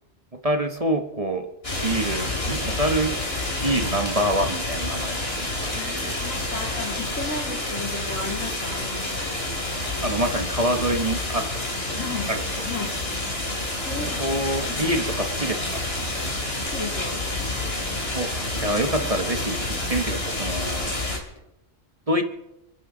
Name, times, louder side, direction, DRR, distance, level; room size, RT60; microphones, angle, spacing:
voice 1, 0.3-1.5 1.8-3.2 3.6-6.1 10.0-11.9 12.3-12.4 14.2-15.8 18.1-18.3 18.6-21.0 22.1-22.2, right 1 dB, 30° right, 5 dB, 1.0 m, -26 dB
sound 1, 1.6-21.2, left 2 dB, 50° left, 3.0 m, -28 dB
voice 2, 5.7-9.3 12.0-12.3 12.6-13.0 13.9-14.9 16.7-17.2, left 3 dB, 80° left, 0 dB, 3.4 m, -34 dB
28.5 x 11.0 x 3.8 m, 0.95 s
omnidirectional pair, 1.3 m